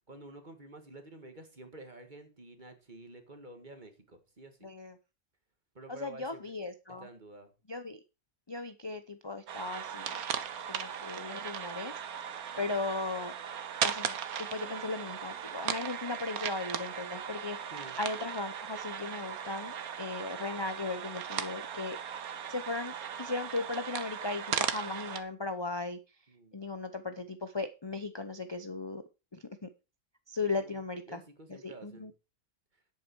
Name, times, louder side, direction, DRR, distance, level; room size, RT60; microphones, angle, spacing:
voice 1, 0.1-4.7 5.7-6.5 7.0-7.5 12.5-12.8 17.7-18.0 26.3-26.6 30.5-30.8 31.1-32.1, right 2 dB, 30° right, 7 dB, 2.0 m, -50 dB
voice 2, 4.6-4.9 5.9-7.1 7.7-8.0 8.5-10.2 10.7-12.3 12.6-13.3 13.8-22.0 22.5-26.0 26.5-29.0 29.3-29.7 30.3-31.2 31.6-32.1, left 3 dB, 25° left, 9 dB, 0.6 m, -37 dB
sound 1, 9.5-25.2, right 8 dB, 75° right, 1.5 m, -37 dB
10.5 x 8.6 x 4.6 m, 0.29 s
omnidirectional pair, 1.5 m